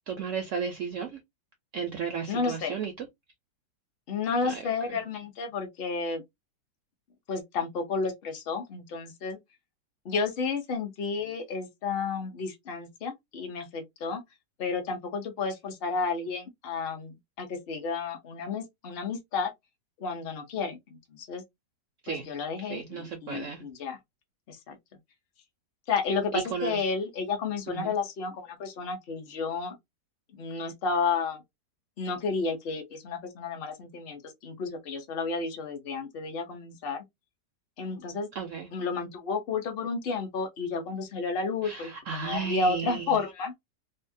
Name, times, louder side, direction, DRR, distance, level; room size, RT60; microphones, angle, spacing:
voice 1, 0.1-1.2 1.7-3.1 4.4-4.5 22.0-22.3 22.7-23.6 26.3-26.8 27.7-27.9 38.4-38.7 41.6-43.1, right 6 dB, 75° right, 0.7 m, -34 dB
voice 2, 2.3-2.7 4.1-6.2 7.3-9.4 10.0-14.2 14.6-19.5 20.0-21.4 22.1-24.0 24.5-24.8 25.9-29.8 30.3-31.4 32.0-37.0 37.8-38.3 38.7-43.5, left 4 dB, 50° left, 0.7 m, -32 dB
3.5 x 2.0 x 2.6 m
omnidirectional pair, 1.9 m